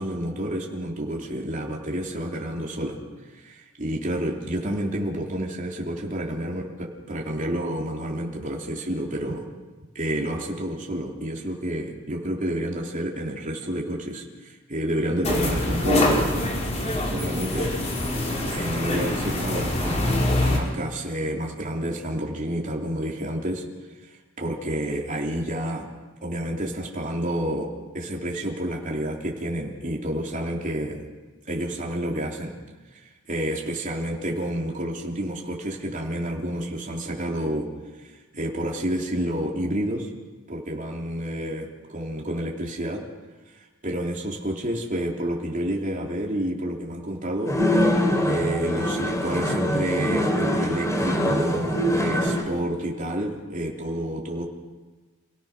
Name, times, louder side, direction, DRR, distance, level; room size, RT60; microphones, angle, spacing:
voice 1, 0.0-3.0 3.3-9.4 9.9-16.5 16.8-17.7 18.5-23.6 24.4-25.9 26.2-31.0 31.5-32.6 32.9-33.0 33.3-37.7 38.0-40.1 40.5-43.1 43.8-47.6 47.8-48.0 48.2-54.5, right 1 dB, 40° right, -1 dB, 3.2 m, -29 dB
sound 1, 15.2-20.6, left 1 dB, 35° left, 4.0 m, -24 dB
sound 2, 47.5-52.4, equal, 15° left, 3.2 m, -23 dB
28.5 x 18.0 x 6.1 m, 1.3 s
head